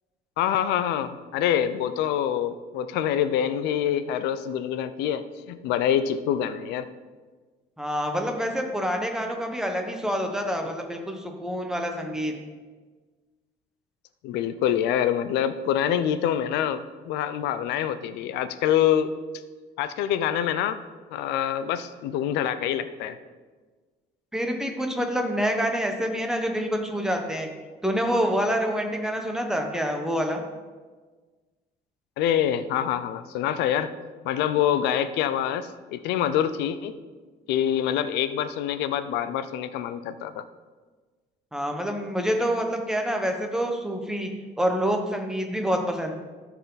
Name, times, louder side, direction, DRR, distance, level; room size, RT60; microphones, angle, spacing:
voice 1, 0.4-6.9 14.2-19.1 19.8-20.8 21.1-23.2 32.2-33.9 34.2-37.0 37.5-40.4, left 10 dB, 90° left, 12 dB, 0.5 m, -26 dB
voice 2, 7.8-12.3 24.3-27.5 27.8-30.4 41.5-44.3 44.6-46.1, equal, 5° right, 3 dB, 1.2 m, -27 dB
13.0 x 4.6 x 4.0 m, 1.4 s
cardioid pair, 110°, 17 cm